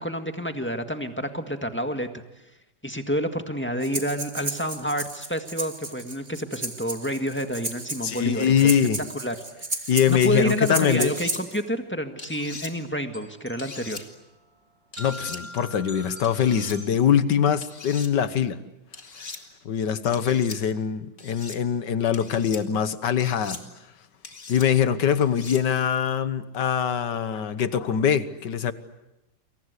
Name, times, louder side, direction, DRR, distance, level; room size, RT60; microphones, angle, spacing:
voice 1, 0.0-2.1 2.8-8.8 9.1-9.4 10.1-14.1, equal, 5° left, 6 dB, 1.6 m, -29 dB
Breathing, 3.8-11.6, right 3 dB, 25° right, 2.1 m, -34 dB
voice 2, 8.0-9.0 9.9-11.2 15.0-18.6 19.7-23.6 24.5-28.7, left 8 dB, 65° left, 13 dB, 1.8 m, -23 dB
sound 1, 11.0-11.4 12.2-12.7 13.6-14.0 14.9-15.4 16.2-16.8 17.6-18.1 18.9-19.4 20.1-20.6 21.2-21.6 22.1-22.6 23.2-23.6 24.2-24.7 25.2-25.6, left 3 dB, 40° left, 2.5 m, -40 dB
sound 2, 11.5-16.8, equal, 55° right, 5.7 m, -44 dB
29.5 x 24.0 x 8.3 m, 0.93 s
omnidirectional pair, 2.0 m